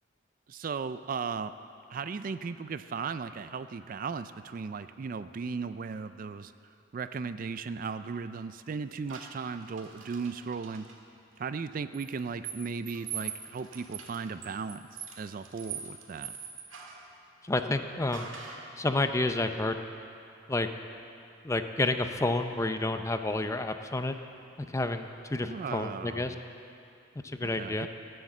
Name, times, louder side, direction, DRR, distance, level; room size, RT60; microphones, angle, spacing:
voice 1, 0.5-1.5 1.9-6.5 6.9-10.9 11.4-14.9 15.2-16.3 25.4-26.4 27.4-27.9, right 5 dB, 45° right, 12 dB, 0.3 m, -36 dB
sound 1, 9.1-11.0 11.9-17.1 18.1-18.7, right 8 dB, 85° right, 1.7 m, -43 dB
voice 2, 17.4-18.3 18.8-19.8 20.5-20.7 21.4-24.1 24.6-26.3 27.2-27.9, left 2 dB, 15° left, 7 dB, 0.5 m, -30 dB
17.5 x 7.9 x 7.2 m, 2.6 s
head